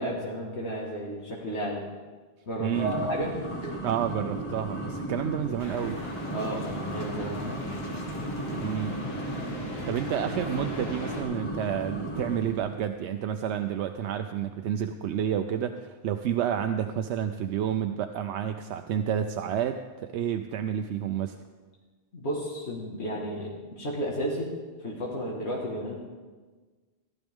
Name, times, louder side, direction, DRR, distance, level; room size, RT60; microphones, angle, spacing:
voice 1, 0.0-1.9 2.5-3.3 3.6-3.8 6.3-7.6 8.4-8.6 22.1-24.5 24.8-26.0, equal, 85° left, -3 dB, 2.0 m, -33 dB
voice 2, 2.6-3.1 3.8-6.0 8.6-9.0 9.9-19.8 20.1-21.4, right 9 dB, 85° right, 7 dB, 0.9 m, -30 dB
sound 1, 2.7-12.8, right 1 dB, 30° left, 1.6 m, -36 dB
sound 2, 5.6-11.2, left 2 dB, 65° left, 2.0 m, -39 dB
15.0 x 12.5 x 3.6 m, 1.4 s
omnidirectional pair, 1.1 m